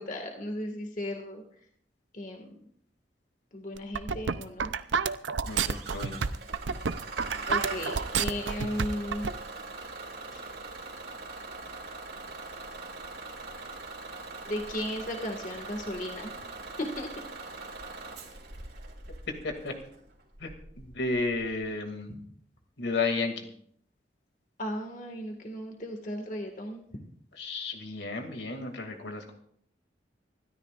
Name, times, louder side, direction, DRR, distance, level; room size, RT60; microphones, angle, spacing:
voice 1, 0.0-1.4 2.1-2.6 3.5-4.7 7.5-9.3 10.3-10.4 14.5-16.4 16.8-17.1 24.6-26.9, left 1 dB, 45° left, 3 dB, 1.8 m, -35 dB
sound 1, 3.8-9.3, right 5 dB, 90° right, 0.6 m, -29 dB
voice 2, 5.5-6.2 19.4-19.7 20.4-20.5 20.8-22.1 22.8-23.5 27.4-29.3, left 3 dB, 80° left, 4 dB, 2.4 m, -32 dB
Bus / Engine starting, 5.5-21.7, right 3 dB, 60° right, 3.0 m, -42 dB
26.0 x 13.0 x 2.5 m, 0.63 s
head